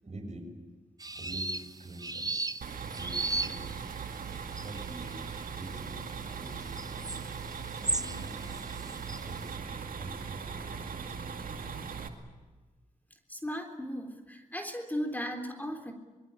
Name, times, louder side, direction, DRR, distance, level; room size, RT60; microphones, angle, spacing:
voice 1, 0.0-0.5 1.1-2.4 2.9-3.8 4.5-6.9 7.7-8.5 9.0-11.7, right 2 dB, 50° right, 3 dB, 7.0 m, -46 dB
sound 1, 1.0-9.4, right 2 dB, 25° right, 1.1 m, -37 dB
sound 2, 2.6-12.1, right 6 dB, 80° right, 2.2 m, -40 dB
sound 3, 7.1-12.2, left 3 dB, 90° left, 3.6 m, -58 dB
voice 2, 13.3-15.9, equal, 10° left, 5 dB, 3.6 m, -36 dB
24.5 x 22.0 x 8.8 m, 1.3 s
cardioid pair, 45°, 14 cm